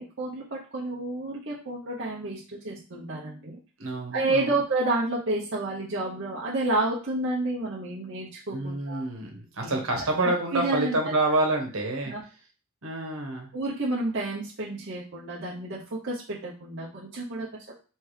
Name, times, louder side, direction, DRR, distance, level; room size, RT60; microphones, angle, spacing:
voice 1, 0.0-3.6 4.1-9.1 9.6-9.8 10.2-11.0 12.1-12.2 13.5-17.7, right 2 dB, 50° right, -6 dB, 0.8 m, -30 dB
voice 2, 3.8-4.5 8.5-12.1 12.8-13.5, right 2 dB, 70° right, 2 dB, 1.2 m, -28 dB
3.3 x 3.3 x 4.7 m, 0.36 s
head